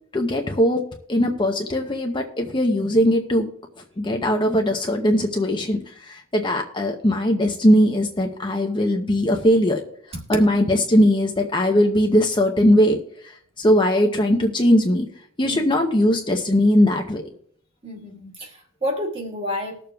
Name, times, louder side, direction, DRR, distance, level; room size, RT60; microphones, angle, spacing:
voice 1, 0.1-3.5 4.0-9.8 10.3-13.0 13.6-15.1 15.4-17.2, equal, 20° left, 3 dB, 0.6 m, -19 dB
voice 2, 17.8-19.8, left 1 dB, 25° right, 1 dB, 1.6 m, -30 dB
20.0 x 6.8 x 2.3 m, 0.62 s
head